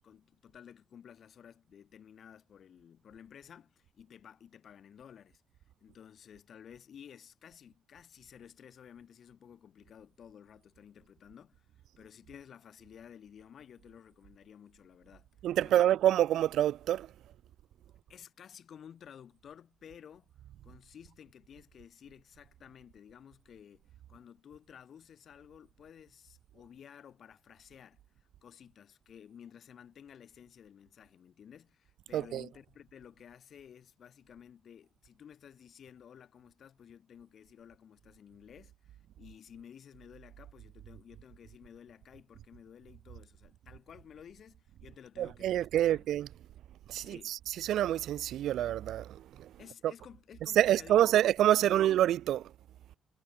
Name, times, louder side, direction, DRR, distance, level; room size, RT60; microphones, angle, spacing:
voice 1, 0.0-5.4 5.8-11.7 12.0-15.9 18.1-20.3 20.6-46.1 47.0-47.4 49.6-51.2 51.6-51.9, left 8 dB, 60° left, 7.9 m, -54 dB
voice 2, 15.4-17.1 32.1-32.5 45.2-46.3 46.9-49.9 50.4-52.5, right 12 dB, 75° right, 0.5 m, -27 dB
cardioid pair, 90°, 0 cm